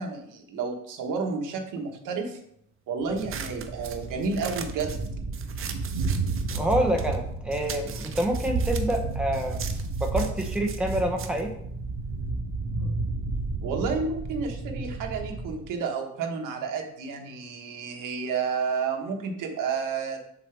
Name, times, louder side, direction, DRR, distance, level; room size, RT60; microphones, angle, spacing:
voice 1, 0.0-2.4 2.9-5.0 13.6-20.3, right 5 dB, 75° right, 3 dB, 1.3 m, -31 dB
Thunder, 3.1-15.7, right 3 dB, 90° right, 1.9 m, -32 dB
sound 1, 3.2-7.2 7.5-12.3, right 7 dB, 40° right, 0.6 m, -41 dB
voice 2, 6.5-9.6 10.0-11.5, right 1 dB, 5° right, 1 dB, 0.8 m, -27 dB
7.6 x 5.6 x 3.4 m, 0.71 s
cardioid pair, 170°, 32 cm